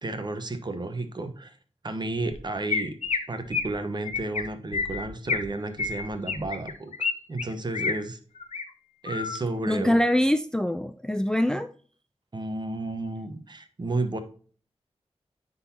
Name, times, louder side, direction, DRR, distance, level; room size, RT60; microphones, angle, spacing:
voice 1, 0.0-1.6 1.8-3.0 3.3-8.2 9.0-10.0 12.3-14.2, right 2 dB, 40° right, 9 dB, 1.0 m, -32 dB
Chirp tweet, 2.3-2.4 2.7-3.2 3.5-3.7 4.1-4.4 4.7-5.4 5.8-7.1 7.4-7.9 8.4-8.6 9.1-9.4, left 5 dB, 80° left, 0.8 m, -29 dB
voice 2, 9.7-11.7, left 1 dB, 5° left, 11 dB, 0.3 m, -24 dB
9.7 x 3.9 x 2.8 m, 0.42 s
wide cardioid pair, 95°, 11 cm